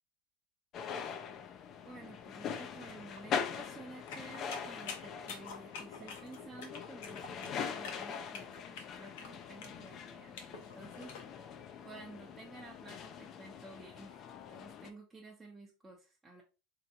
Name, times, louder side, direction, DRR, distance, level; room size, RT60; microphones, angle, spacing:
sound 1, 0.7-14.9, left 7 dB, 40° left, 0.5 m, -43 dB
voice 1, 1.8-11.2 11.8-16.4, right 2 dB, 15° right, -2 dB, 0.8 m, -52 dB
sound 2, 3.2-3.7 4.1-4.2 4.6-5.1 5.5-5.6 6.0-6.1 6.6-6.7 7.1-8.3 8.6-8.7 9.1-9.4, right 9 dB, 75° right, 0.3 m, -57 dB
sound 3, 4.1-11.2, left 5 dB, 70° left, 0.8 m, -48 dB
3.3 x 3.0 x 2.8 m, 0.30 s
hypercardioid pair, 90°, 0 cm